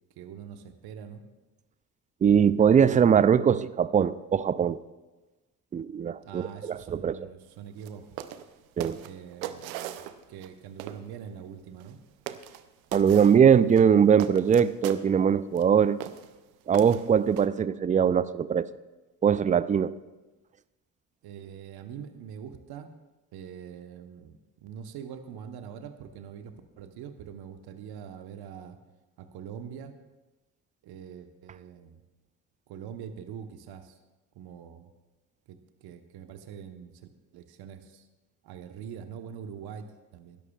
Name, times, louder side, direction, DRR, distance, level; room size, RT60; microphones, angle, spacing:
voice 1, 0.2-1.2 6.2-8.2 9.0-10.0 10.3-12.0 21.2-22.9 23.3-28.8 29.2-29.9 30.8-32.0 32.7-34.0 34.3-34.9 35.5-36.9 37.3-38.1 38.4-40.4, right 8 dB, 65° right, 8 dB, 1.2 m, -43 dB
voice 2, 2.2-4.8 5.7-7.2 8.8-9.0 12.9-16.0 16.7-18.7 19.2-20.0, right 7 dB, 20° right, 17 dB, 0.4 m, -21 dB
sound 1, 7.8-7.9 8.2-8.5 8.8-10.5 10.8-11.0 11.8-11.9 12.3-12.6 12.9-13.4 13.7-15.0 15.5-15.6 16.0-16.3 16.7-17.5, right 11 dB, 85° right, 0.7 m, -38 dB
19.5 x 11.0 x 2.4 m, 1.1 s
hypercardioid pair, 55°, 41 cm